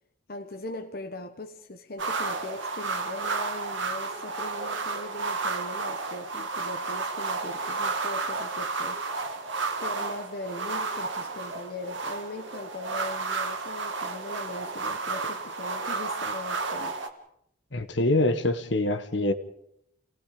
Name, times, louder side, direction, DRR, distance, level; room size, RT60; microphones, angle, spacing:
voice 1, 0.3-9.3 9.8-17.0, left 2 dB, 50° left, 1.2 m, -40 dB
sound 1, 2.0-17.1, right 4 dB, 70° right, 2.1 m, -32 dB
voice 2, 17.7-19.3, left 2 dB, 65° left, 1.5 m, -25 dB
29.5 x 18.5 x 5.2 m
head